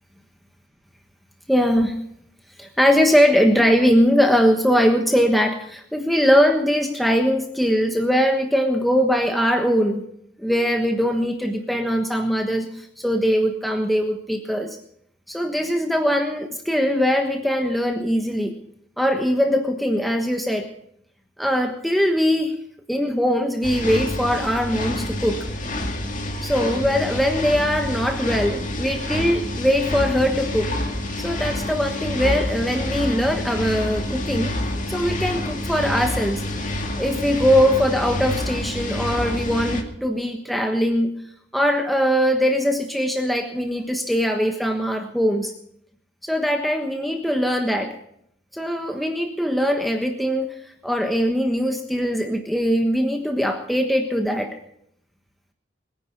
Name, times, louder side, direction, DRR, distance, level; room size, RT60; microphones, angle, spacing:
voice 1, 1.5-2.0 2.6-10.0 10.4-14.8 15.3-18.5 19.0-20.7 21.4-22.5 22.9-25.4 26.4-30.7 31.2-34.5 34.9-36.4 37.0-41.1 41.5-45.5 46.2-47.9 48.5-50.6 50.8-54.6, equal, ahead, 3 dB, 1.3 m, -21 dB
sound 1, 23.6-39.8, left 1 dB, 45° left, 2.4 m, -28 dB
21.5 x 9.9 x 6.0 m, 0.71 s
head